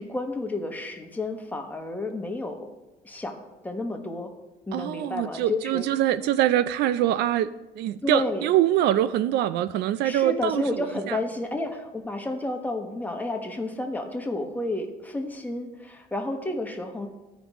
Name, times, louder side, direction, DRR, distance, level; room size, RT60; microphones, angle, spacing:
voice 1, 0.0-2.7 3.0-3.4 3.6-4.3 4.7-5.8 8.0-8.5 10.0-17.1, left 2 dB, 10° left, 1.2 m, -31 dB
voice 2, 4.7-11.2, right 12 dB, 80° right, 0.4 m, -24 dB
15.0 x 5.1 x 3.1 m
cardioid pair, 110°, 17 cm